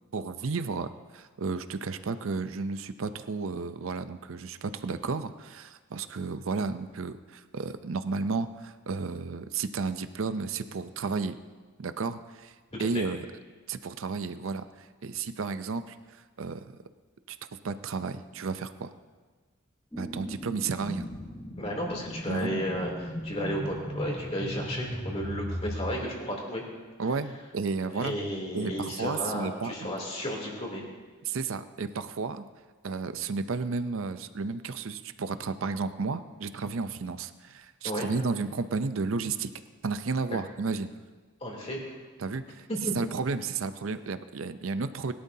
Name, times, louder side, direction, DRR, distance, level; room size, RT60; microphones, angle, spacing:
voice 1, 0.1-11.4 11.8-12.5 12.8-13.3 13.7-16.7 17.3-17.4 17.6-18.9 20.0-21.1 22.3-22.6 27.0-28.2 28.5-29.9 31.2-32.4 32.8-39.5 39.8-40.9 42.2-42.7 42.9-45.1, right 4 dB, 65° right, 11 dB, 0.6 m, -32 dB
sound 1, 19.9-25.9, equal, 10° left, 1.1 m, -37 dB
voice 2, 21.5-26.6 27.9-30.8 37.8-38.1 41.4-41.8 42.7-42.9, equal, 30° left, -2 dB, 3.0 m, -33 dB
21.5 x 12.0 x 2.8 m, 1.4 s
head